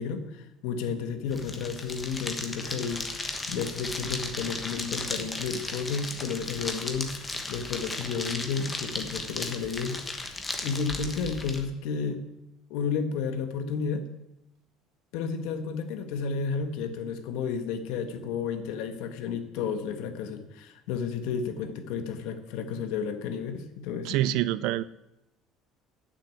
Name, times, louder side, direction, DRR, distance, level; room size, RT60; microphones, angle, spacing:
voice 1, 0.0-12.2 12.7-14.1 15.1-24.2, left 5 dB, 70° left, 8 dB, 1.5 m, -32 dB
sound 1, 1.3-11.6, left 2 dB, 15° left, 1.3 m, -36 dB
voice 2, 24.0-24.8, right 14 dB, 65° right, 17 dB, 0.5 m, -26 dB
9.1 x 7.2 x 8.6 m, 0.87 s
cardioid pair, 165°, 0 cm